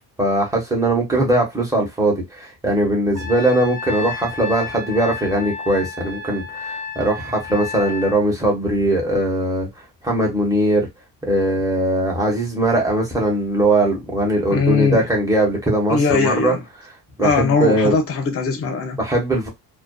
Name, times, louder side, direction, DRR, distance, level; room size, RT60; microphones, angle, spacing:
voice 1, 0.2-9.7 10.0-10.9 11.3-16.5 17.2-17.9 19.0-19.5, right 1 dB, 10° right, 0.9 m, -20 dB
Trumpet, 3.1-8.2, left 4 dB, 35° right, 1.0 m, -32 dB
voice 2, 14.5-15.1 15.9-16.6 17.2-19.0, left 4 dB, 35° left, 0.6 m, -20 dB
2.5 x 2.2 x 2.2 m
cardioid pair, 155°, 39 cm